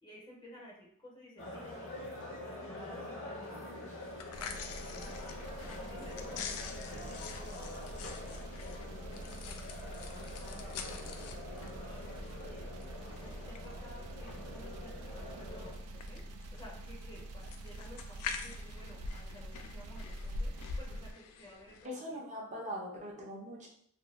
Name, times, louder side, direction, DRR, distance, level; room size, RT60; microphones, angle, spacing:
voice 1, 0.0-3.9 4.4-5.2 5.7-7.5 8.2-11.2 11.5-11.6 12.0-12.7 13.2-15.7 16.1-16.2 16.5-20.5 20.8-22.2, equal, 20° left, -3 dB, 0.6 m, -55 dB
sound 1, 1.4-15.7, left 1 dB, 60° left, 0.7 m, -45 dB
sound 2, 4.0-21.9, left 4 dB, 80° left, 0.3 m, -46 dB
sound 3, 4.3-21.1, right 1 dB, 90° right, 0.4 m, -46 dB
voice 2, 21.8-23.7, equal, 35° right, -2 dB, 0.7 m, -41 dB
2.5 x 2.2 x 3.1 m, 0.64 s
head